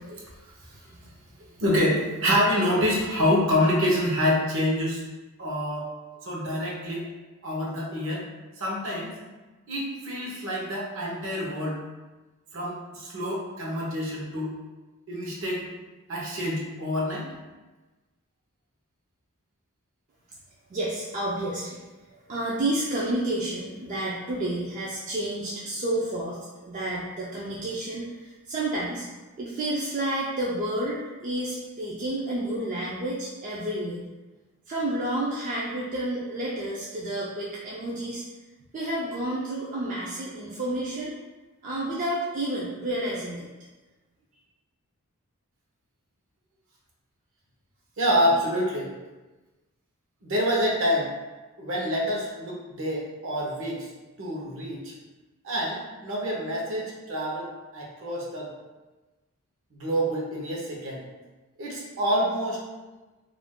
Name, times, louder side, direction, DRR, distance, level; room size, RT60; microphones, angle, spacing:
voice 1, 1.6-5.0 5.4-5.9 6.3-7.1 7.4-8.3 8.6-9.1 9.7-11.8 12.5-14.5 15.1-15.7 16.1-17.3 48.0-48.9 50.2-51.1 51.6-53.9 54.2-54.9 55.4-57.5 57.7-58.5 59.7-61.0 61.6-62.6, equal, 60° right, -3 dB, 0.7 m, -26 dB
voice 2, 20.7-21.8 22.1-29.1 29.4-34.1 34.7-38.2 38.7-41.1 41.6-43.5, right 1 dB, 35° right, -6 dB, 0.3 m, -30 dB
2.5 x 2.3 x 3.5 m, 1.2 s
head